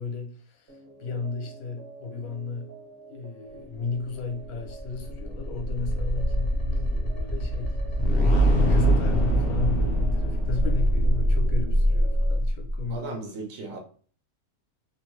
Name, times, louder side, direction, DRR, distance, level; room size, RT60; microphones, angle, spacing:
voice 1, 0.0-2.7 3.1-13.4, left 4 dB, 70° left, 1.1 m, -34 dB
sound 1, 0.7-12.4, right 3 dB, 25° right, 0.8 m, -48 dB
sound 2, 4.5-12.9, equal, 55° left, 0.7 m, -23 dB
voice 2, 12.9-13.8, right 2 dB, 60° right, 0.9 m, -36 dB
2.7 x 2.2 x 3.1 m
omnidirectional pair, 1.6 m